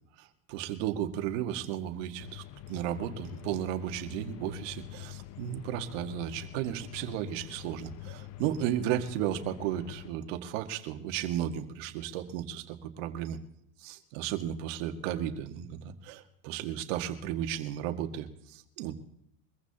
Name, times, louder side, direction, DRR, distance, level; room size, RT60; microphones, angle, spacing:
voice 1, 0.2-13.4 13.8-18.9, right 11 dB, 65° right, 7 dB, 1.8 m, -34 dB
sound 1, 2.2-10.1, left 14 dB, 40° left, 0.7 m, -45 dB
23.5 x 15.0 x 2.9 m, 0.75 s
supercardioid pair, 120°, 41 cm